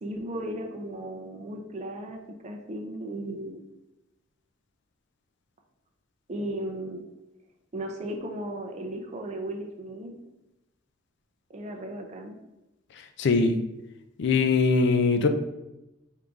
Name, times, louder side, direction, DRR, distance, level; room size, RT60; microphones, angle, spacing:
voice 1, 0.0-3.7 6.3-7.0 7.7-10.1 11.5-12.3, right 1 dB, 35° right, 2 dB, 0.4 m, -36 dB
voice 2, 13.2-13.6 14.2-15.3, left 4 dB, 65° left, 8 dB, 0.4 m, -21 dB
3.6 x 2.6 x 4.5 m, 0.95 s
head